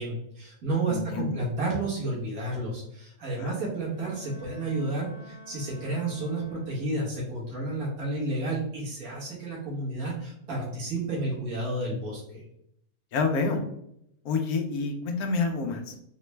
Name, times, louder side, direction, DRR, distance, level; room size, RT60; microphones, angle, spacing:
voice 1, 0.0-12.4, right 2 dB, 70° right, -4 dB, 1.7 m, -31 dB
voice 2, 0.9-1.4 3.4-3.5 13.1-13.6 14.2-16.0, left 4 dB, 85° left, 4 dB, 1.1 m, -28 dB
Bowed string instrument, 3.8-7.2, equal, 50° left, 0.9 m, -51 dB
4.0 x 2.2 x 3.1 m, 0.76 s
omnidirectional pair, 1.5 m